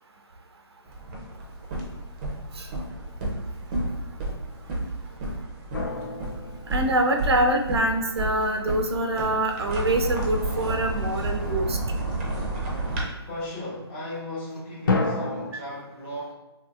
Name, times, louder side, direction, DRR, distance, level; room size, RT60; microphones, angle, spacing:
sound 1, 0.9-13.0, right 2 dB, 25° right, 0.5 m, -31 dB
sound 2, 5.7-7.8 14.9-15.5, left 3 dB, 50° left, 0.4 m, -29 dB
voice 1, 6.7-11.8 15.5-15.6, right 1 dB, 75° right, 4 dB, 0.4 m, -25 dB
voice 2, 13.2-16.3, left 1 dB, 25° left, -5 dB, 0.7 m, -36 dB
2.8 x 2.6 x 2.4 m, 1.0 s
figure-of-eight pair, 145°, 14 cm